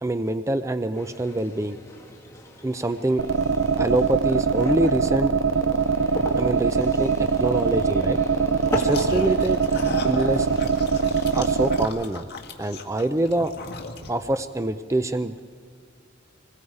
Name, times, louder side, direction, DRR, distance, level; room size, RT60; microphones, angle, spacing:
voice 1, 0.0-1.8 2.6-3.2 3.8-5.4 6.4-8.2 8.8-9.6 10.0-10.5 11.3-12.3 12.6-13.5 14.1-15.4, right 1 dB, 15° right, 10 dB, 0.5 m, -25 dB
sound 1, 0.9-11.7, left 1 dB, 15° left, 2.1 m, -38 dB
sound 2, 3.2-11.8, right 5 dB, 80° right, 0.6 m, -22 dB
sound 3, 8.6-14.4, left 3 dB, 55° left, 1.9 m, -37 dB
26.5 x 21.5 x 4.8 m, 2.2 s
head